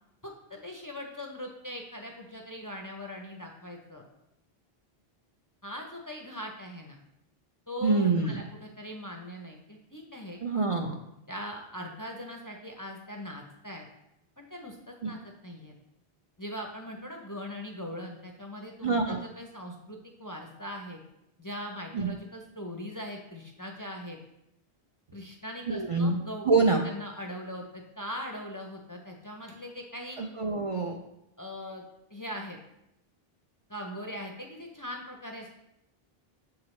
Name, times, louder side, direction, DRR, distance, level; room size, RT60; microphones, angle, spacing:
voice 1, 0.2-4.0 5.6-7.0 7.7-10.4 11.3-13.9 14.4-15.2 15.4-15.7 16.4-21.0 21.4-24.2 25.1-26.6 26.8-30.2 31.4-31.8 32.1-32.6 33.7-35.5, equal, 25° left, 1 dB, 0.5 m, -40 dB
voice 2, 7.8-8.4 10.4-10.9 18.8-19.2 21.9-22.1 25.7-26.2 26.5-26.8 30.2-31.0, right 3 dB, 45° right, 2 dB, 0.4 m, -25 dB
6.8 x 4.8 x 3.1 m, 0.83 s
omnidirectional pair, 1.0 m